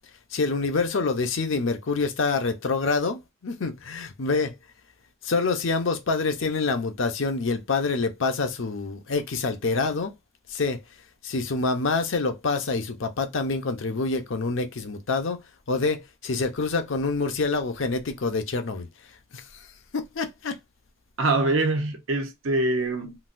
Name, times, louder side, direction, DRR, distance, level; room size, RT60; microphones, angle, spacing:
voice 1, 0.3-4.6 5.2-10.1 10.5-10.8 11.2-15.4 15.7-18.9 19.3-19.4 19.9-20.6, left 4 dB, 60° left, 0.6 m, -26 dB
voice 2, 21.2-23.2, right 2 dB, 70° right, 0.7 m, -24 dB
3.9 x 2.2 x 2.5 m
head